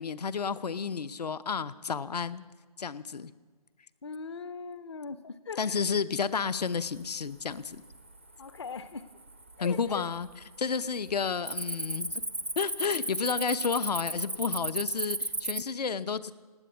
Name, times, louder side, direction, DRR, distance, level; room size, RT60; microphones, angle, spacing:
voice 1, 0.0-2.4 2.8-3.3 5.6-7.8 9.6-10.3 10.6-12.1 12.6-16.3, left 6 dB, 80° left, 15 dB, 0.9 m, -31 dB
voice 2, 4.0-5.8 8.4-9.1 9.6-10.1, left 5 dB, 40° left, 13 dB, 0.6 m, -40 dB
Cricket, 6.6-7.1 7.5-8.0 8.6-8.7 9.3-9.9 10.1-10.4 10.8-15.6, right 1 dB, 20° right, 0.4 m, -34 dB
18.0 x 8.6 x 8.3 m, 1.4 s
hypercardioid pair, 180°, 21 cm